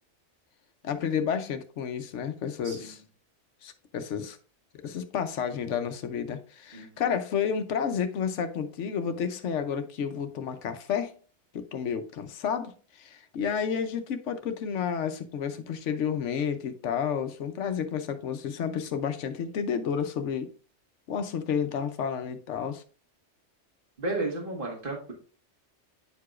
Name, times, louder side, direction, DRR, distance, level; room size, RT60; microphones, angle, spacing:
voice 1, 0.8-3.0 3.6-4.4 4.7-11.1 11.5-20.5 21.1-22.8, left 7 dB, 80° left, 1.0 m, -31 dB
voice 2, 2.6-3.0 6.7-6.9 24.0-25.1, right 2 dB, 45° right, 1.8 m, -33 dB
8.9 x 4.7 x 2.4 m
omnidirectional pair, 1.2 m